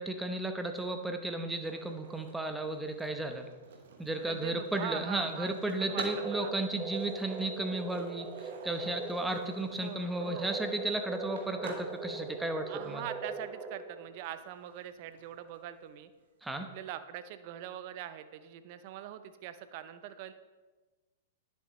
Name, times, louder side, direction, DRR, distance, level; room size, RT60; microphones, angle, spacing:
voice 1, 0.0-3.5 4.0-13.0 16.4-16.7, right 2 dB, 5° right, 6 dB, 0.8 m, -34 dB
Skateboard, 0.6-16.5, right 4 dB, 70° right, 1.2 m, -51 dB
voice 2, 4.2-5.5 5.8-6.5 9.8-10.6 12.7-16.1 16.7-20.3, right 11 dB, 50° right, 11 dB, 0.6 m, -42 dB
sound 1, 5.8-14.2, right 3 dB, 25° right, 1.2 m, -41 dB
10.5 x 6.7 x 3.1 m, 1.3 s
hypercardioid pair, 110°, 0 cm